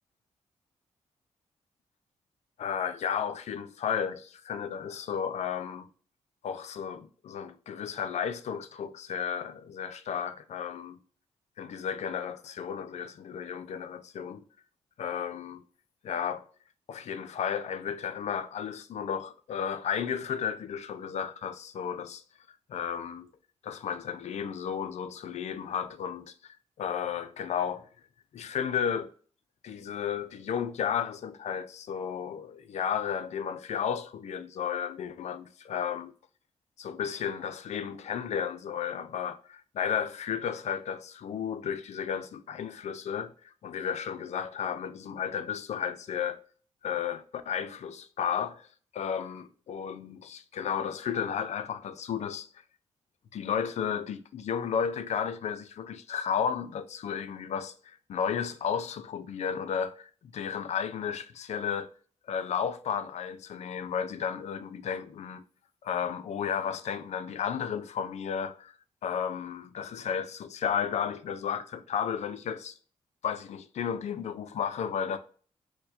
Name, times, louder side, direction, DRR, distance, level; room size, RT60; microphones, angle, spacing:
voice 1, 2.6-5.9 6.4-11.0 11.6-14.4 15.0-15.6 16.0-16.4 16.9-22.2 22.7-23.3 23.6-26.3 26.8-27.9 28.3-29.1 29.6-36.1 36.8-46.4 46.8-48.7 48.9-52.5 53.3-61.9 62.3-65.4 65.8-68.7 69.0-72.8 73.2-75.2, left 7 dB, 65° left, 0.4 m, -33 dB
4.4 x 2.2 x 2.6 m
supercardioid pair, 55°, 13 cm